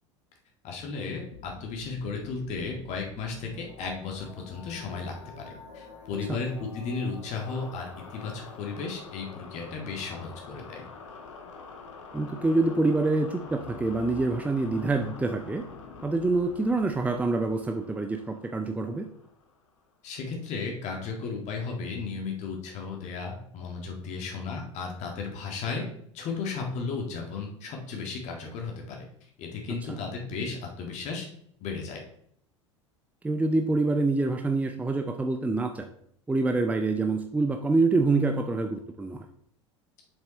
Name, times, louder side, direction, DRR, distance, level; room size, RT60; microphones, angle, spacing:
voice 1, 0.6-5.4 5.7-10.9 20.0-25.9 26.1-29.1 29.4-31.3 31.6-32.0, left 4 dB, 45° left, 1 dB, 1.9 m, -34 dB
sound 1, 1.3-19.8, left 4 dB, 70° left, 1.4 m, -47 dB
voice 2, 12.1-15.7 16.0-19.1 29.9-30.0 33.2-35.9 36.3-39.3, right 3 dB, 10° right, 5 dB, 0.6 m, -26 dB
7.4 x 7.2 x 3.2 m, 0.68 s
figure-of-eight pair, 75°, 16 cm